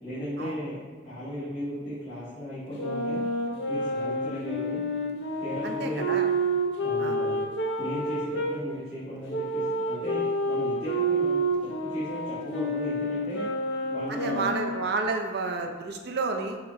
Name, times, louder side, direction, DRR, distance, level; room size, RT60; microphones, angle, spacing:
voice 1, 0.0-3.2 3.7-4.8 5.4-6.2 6.8-7.4 7.8-13.4 13.9-14.4, equal, 30° left, -13 dB, 1.4 m, -36 dB
sound 1, 2.8-8.6 9.3-14.9, right 1 dB, 80° left, 0.7 m, -29 dB
voice 2, 5.6-6.3 7.0-7.2 14.1-16.6, right 3 dB, 65° right, 3 dB, 0.5 m, -30 dB
6.0 x 2.2 x 3.9 m, 1.4 s
head